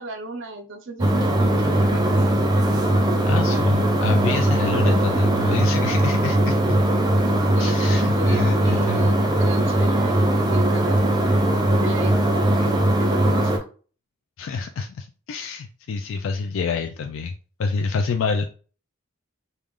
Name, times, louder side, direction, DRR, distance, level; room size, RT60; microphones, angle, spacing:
voice 1, 0.0-2.4 7.5-11.3 11.6-13.5, right 2 dB, 65° right, 5 dB, 0.6 m, -35 dB
sound 1, 1.0-13.6, right 1 dB, 20° right, 0.6 m, -20 dB
voice 2, 3.2-6.6 7.6-9.1 14.4-17.3 17.6-18.5, left 4 dB, 65° left, 5 dB, 0.3 m, -27 dB
3.2 x 2.4 x 3.6 m, 0.38 s
head